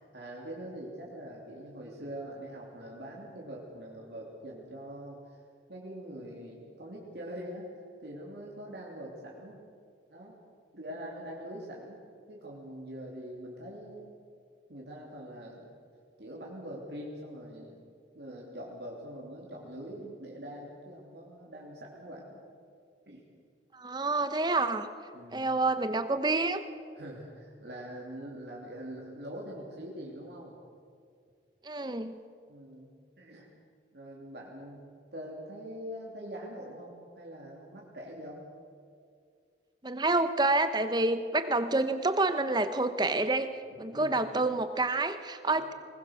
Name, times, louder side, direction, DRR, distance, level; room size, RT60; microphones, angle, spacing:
voice 1, 0.1-5.4 5.7-7.7 8.0-9.6 10.1-10.4 10.7-12.0 12.3-14.2 14.7-15.7 16.2-17.8 18.1-22.4 23.0-23.2 25.1-25.5 27.0-30.5 32.5-33.5 33.9-34.8 35.1-38.4 43.9-44.2 45.5-45.6, equal, 70° right, -3 dB, 3.0 m, -43 dB
voice 2, 23.7-24.9 25.3-26.6 31.6-32.2 39.8-43.5 43.8-45.7, right 2 dB, 25° right, 10 dB, 0.9 m, -28 dB
20.5 x 20.0 x 6.4 m, 2.2 s
head